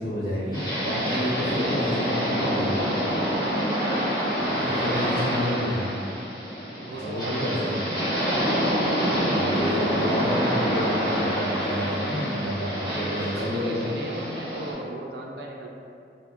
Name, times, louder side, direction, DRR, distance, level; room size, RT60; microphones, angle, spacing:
voice 1, 0.0-2.9 4.4-6.0 6.9-7.8 9.3-13.9, equal, 70° left, -11 dB, 0.9 m, -29 dB
sound 1, 0.5-14.7, equal, 25° left, 0.9 m, -27 dB
voice 2, 1.2-3.0 4.7-5.6 6.8-8.0 12.7-15.7, right 1 dB, 65° right, -1 dB, 0.4 m, -36 dB
2.7 x 2.0 x 3.4 m, 2.4 s
head